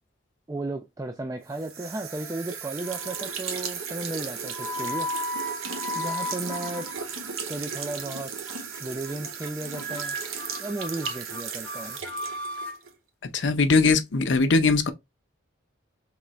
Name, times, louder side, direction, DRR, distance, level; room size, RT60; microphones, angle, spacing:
voice 1, 0.5-5.1 5.9-6.9 7.5-8.3 8.8-10.2 10.6-12.0, right 2 dB, 15° right, 0.3 m, -34 dB
sound 1, 1.5-12.9, right 6 dB, 85° right, 0.9 m, -36 dB
sound 2, 1.9-2.5 2.8-3.3 4.1-7.4 7.7-8.1 8.5-8.8 9.0-9.1 9.4-9.5 9.8-12.8, left 1 dB, 5° left, 0.7 m, -35 dB
voice 2, 13.3-14.9, left 4 dB, 65° left, 0.6 m, -20 dB
3.8 x 3.2 x 3.0 m
head